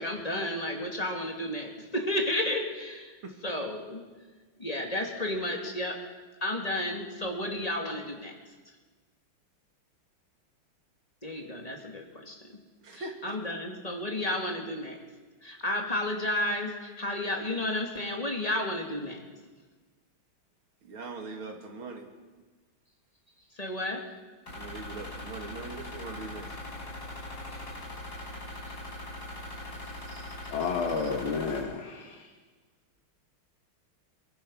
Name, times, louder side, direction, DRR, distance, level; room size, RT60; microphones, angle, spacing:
voice 1, 0.0-3.2 3.4-4.0 4.6-6.0 6.4-8.3 11.2-12.6 12.9-15.0 15.4-19.2 23.5-24.0 28.7-28.8, left 1 dB, 15° left, 1 dB, 2.6 m, -32 dB
voice 2, 20.8-22.1 24.5-26.5 30.1-30.3, right 3 dB, 75° right, 3 dB, 3.2 m, -41 dB
sound 1, 24.5-31.6, left 1 dB, 50° left, 5.3 m, -41 dB
voice 3, 30.5-32.3, left 5 dB, 75° left, 2 dB, 2.2 m, -31 dB
22.5 x 22.5 x 5.7 m, 1.4 s
omnidirectional pair, 2.3 m